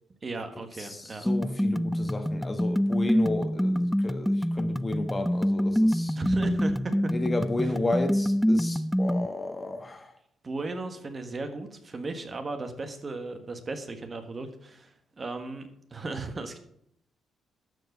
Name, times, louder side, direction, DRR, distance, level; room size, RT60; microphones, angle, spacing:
voice 1, 0.2-1.3 6.1-7.1 7.6-7.7 10.4-16.6, right 3 dB, 35° right, 7 dB, 1.4 m, -36 dB
voice 2, 0.8-6.2 7.1-10.1, left 2 dB, 25° left, 7 dB, 1.4 m, -32 dB
sound 1, 1.3-9.3, equal, ahead, 0.3 m, -26 dB
12.5 x 4.7 x 6.8 m, 0.70 s
cardioid pair, 90°, 0 cm